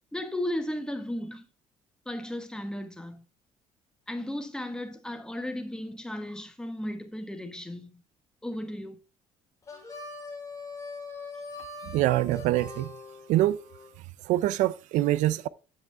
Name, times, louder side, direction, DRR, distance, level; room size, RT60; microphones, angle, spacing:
voice 1, 0.1-1.5 2.0-3.2 4.1-8.0 8.4-9.0, left 1 dB, 5° left, 1.3 m, -35 dB
Harmonica, 9.6-13.9, left 3 dB, 25° left, 4.2 m, -42 dB
voice 2, 11.8-12.9 13.3-13.6 14.3-15.5, right 15 dB, 80° right, 0.5 m, -24 dB
9.2 x 7.3 x 3.4 m
cardioid pair, 110°, 13 cm